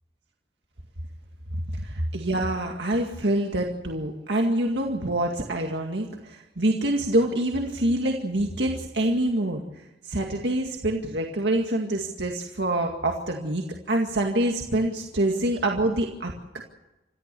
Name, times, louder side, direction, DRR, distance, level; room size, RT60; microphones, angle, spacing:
voice 1, 1.8-9.6 10.0-16.6, right 1 dB, 90° right, 1 dB, 2.1 m, -26 dB
28.0 x 14.5 x 6.9 m, 1.0 s
head